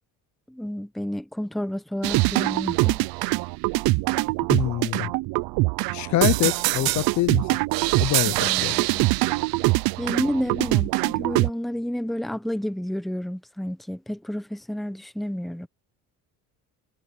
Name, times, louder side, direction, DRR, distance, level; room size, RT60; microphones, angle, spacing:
voice 1, 0.5-3.1 8.4-9.1 10.0-15.7, equal, ahead, 0.9 m, -30 dB
sound 1, 2.0-11.5, right 22 dB, 90° right, 0.6 m, -23 dB
voice 2, 4.5-5.1 5.9-7.5 8.0-8.9, left 14 dB, 55° left, 0.8 m, -25 dB
cardioid pair, 140°, 35 cm